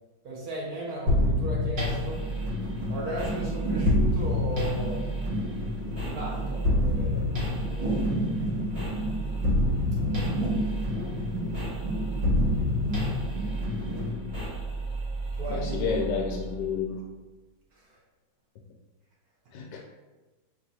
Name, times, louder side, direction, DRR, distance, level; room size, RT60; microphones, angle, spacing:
voice 1, 0.2-2.2 2.9-5.1 6.0-8.2 10.0-12.0 15.4-16.0, right 1 dB, 60° right, -3 dB, 1.2 m, -37 dB
sound 1, 1.1-16.7, left 1 dB, 40° right, 1.5 m, -29 dB
sound 2, 2.0-14.1, right 2 dB, 90° right, 2.0 m, -33 dB
voice 2, 15.5-16.9 19.5-19.8, left 5 dB, 70° left, 1 dB, 1.1 m, -30 dB
4.8 x 2.6 x 4.1 m, 1.2 s
omnidirectional pair, 2.1 m